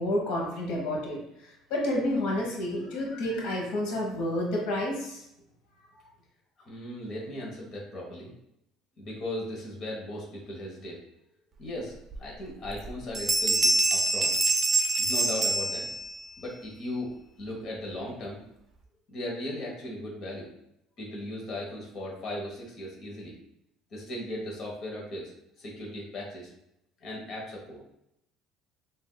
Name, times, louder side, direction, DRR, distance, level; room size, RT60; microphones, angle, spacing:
voice 1, 0.0-5.2, left 1 dB, 75° left, -1 dB, 1.1 m, -30 dB
voice 2, 6.6-8.3 9.0-11.0 11.6-14.3 15.0-15.9 16.4-17.1 17.4-18.4 19.1-20.5 21.0-23.3 23.9-25.3 25.6-26.5 27.0-27.8, left 1 dB, 40° left, -2 dB, 1.1 m, -37 dB
sound 1, 12.1-12.2 12.6-12.9 13.1-16.3, right 2 dB, 20° right, 0.5 m, -25 dB
6.2 x 2.6 x 2.2 m, 0.79 s
cardioid pair, 160°, 0 cm